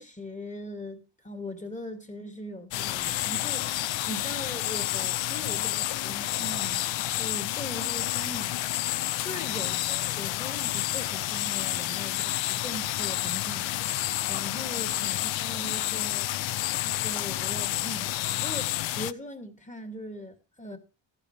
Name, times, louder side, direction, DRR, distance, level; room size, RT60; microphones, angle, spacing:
voice 1, 0.0-8.6 9.2-13.7 14.3-16.3 16.8-20.8, left 1 dB, 15° left, 2.4 m, -40 dB
sound 1, 2.7-19.1, left 15 dB, 75° left, 0.6 m, -30 dB
14.5 x 10.5 x 3.3 m
cardioid pair, 80°, 46 cm